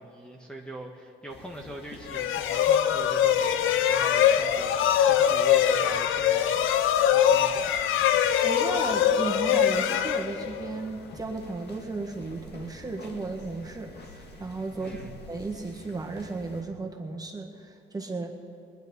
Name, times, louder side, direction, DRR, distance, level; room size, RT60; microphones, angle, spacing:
voice 1, 0.0-7.8 14.8-15.2, right 1 dB, 5° left, 0 dB, 1.4 m, -43 dB
sound 1, 1.3-16.6, left 2 dB, 55° left, 2.1 m, -48 dB
sound 2, 2.1-10.8, left 9 dB, 85° left, 0.7 m, -23 dB
voice 2, 8.4-15.0 15.3-18.3, right 3 dB, 20° right, 1 dB, 1.7 m, -35 dB
20.5 x 10.5 x 5.5 m, 2.5 s
cardioid pair, 90°, 20 cm